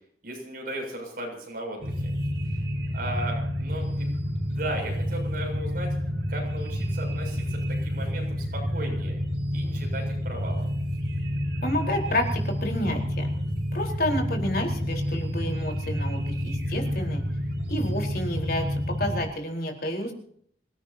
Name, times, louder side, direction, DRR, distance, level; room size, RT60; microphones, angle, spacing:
voice 1, 0.2-1.9 2.5-2.6 2.9-6.0 6.3-9.2 9.5-10.7, right 1 dB, 55° right, 1 dB, 7.2 m, -36 dB
sound 1, 1.8-19.2, equal, 75° right, 4.5 m, -29 dB
voice 2, 11.6-13.3 13.7-17.2 17.7-20.1, left 1 dB, 60° left, 2 dB, 4.4 m, -30 dB
26.0 x 17.0 x 2.9 m, 0.63 s
head